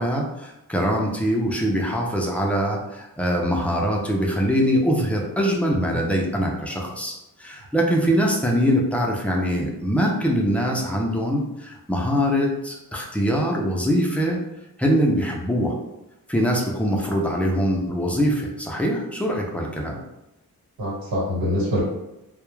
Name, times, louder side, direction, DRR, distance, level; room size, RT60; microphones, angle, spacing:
voice 1, 0.0-7.1 7.4-14.4 14.8-15.8 16.3-20.0, equal, 5° left, -1 dB, 0.3 m, -23 dB
voice 2, 5.7-6.0 20.8-21.8, left 1 dB, 80° right, -6 dB, 1.3 m, -25 dB
2.2 x 2.0 x 3.0 m, 0.92 s
wide cardioid pair, 160°, 35 cm